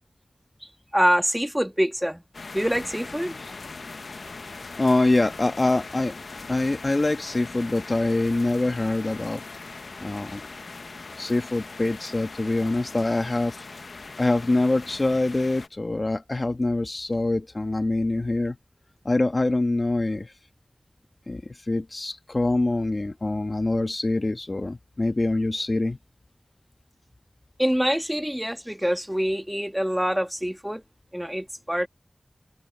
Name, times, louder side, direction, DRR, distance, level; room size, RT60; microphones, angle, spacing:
voice 1, 0.9-2.2 2.5-3.5 27.6-30.8 31.1-31.9, equal, 5° right, 1.7 m, -25 dB
sound 1, 2.3-15.7, left 3 dB, 85° left, 0.8 m, -40 dB
voice 2, 4.8-6.1 6.5-9.4 10.0-10.4 11.2-13.6 14.2-18.6 19.0-20.3 21.3-26.0, left 2 dB, 45° left, 1.4 m, -24 dB
wide cardioid pair, 60°, 0 cm